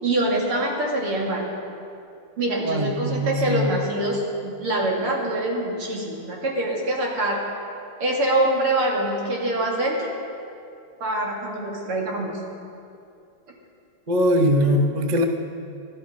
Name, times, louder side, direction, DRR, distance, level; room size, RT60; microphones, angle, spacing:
voice 1, 0.0-1.5 2.4-7.4 8.0-10.1 11.0-12.4, right 1 dB, 85° right, -3 dB, 3.7 m, -24 dB
voice 2, 2.6-3.7 14.1-15.2, equal, 35° right, 4 dB, 0.7 m, -21 dB
20.0 x 13.0 x 5.3 m, 2.6 s
omnidirectional pair, 2.4 m